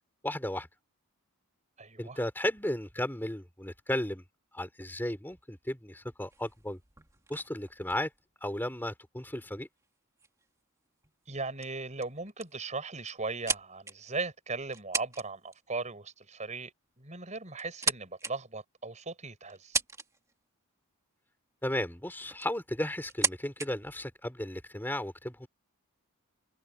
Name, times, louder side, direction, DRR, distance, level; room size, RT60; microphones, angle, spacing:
voice 1, 0.2-0.7 2.0-4.2 4.5-6.8 7.3-8.1 8.4-9.7 21.6-25.5, left 1 dB, 10° left, 3.5 m, -34 dB
voice 2, 1.8-2.2 11.3-16.7 17.0-19.8, right 3 dB, 30° right, 5.3 m, -38 dB
sound 1, 6.3-8.9 9.8-9.9 10.2-10.5 11.0-11.3 11.6-11.7 12.0-12.6 13.1-14.2 14.7-15.3 15.5-15.8 16.9-17.0 17.5-18.3 18.9-19.0 19.5-20.3 21.7-21.8 22.2-22.6 23.0-23.7, right 4 dB, 15° right, 2.2 m, -35 dB
head